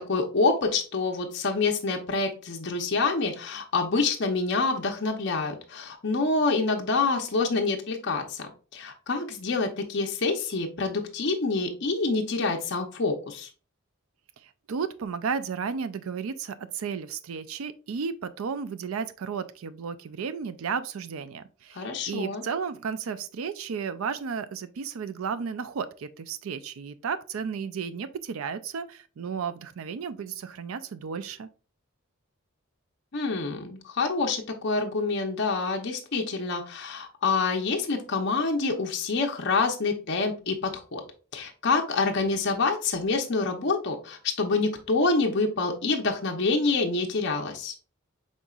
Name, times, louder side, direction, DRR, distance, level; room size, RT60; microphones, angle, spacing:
voice 1, 0.0-13.5 21.7-22.4 33.1-41.0 41.3-47.7, left 3 dB, 55° left, 0.7 m, -27 dB
voice 2, 14.4-31.5, right 6 dB, 80° right, 0.4 m, -33 dB
5.4 x 3.7 x 2.3 m
head